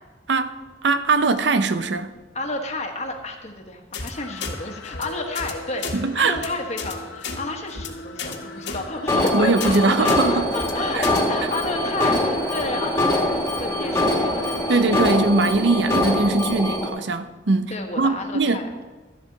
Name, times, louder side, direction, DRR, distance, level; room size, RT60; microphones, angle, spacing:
voice 1, 0.3-2.1 5.9-6.4 9.3-10.5 10.9-11.1 14.6-18.6, right 3 dB, 70° right, 0.6 m, -21 dB
voice 2, 2.3-15.2 17.7-18.8, left 2 dB, 40° left, 1.3 m, -31 dB
sound 1, 3.9-4.1 4.4-4.5 4.9-5.0 5.4-5.5 5.8-6.0 6.3-6.5 6.8-6.9 7.2-7.4 7.7-7.9 8.2-8.4 8.7-8.8 9.1-9.3 9.6-9.8 10.1-10.2 10.5-10.7 11.0-11.2, left 4 dB, 70° left, 1.5 m, -32 dB
sound 2, 4.1-14.9, left 2 dB, 90° left, 1.0 m, -37 dB
Alarm, 9.1-16.9, left 1 dB, 15° left, 1.9 m, -23 dB
13.0 x 10.5 x 4.0 m
head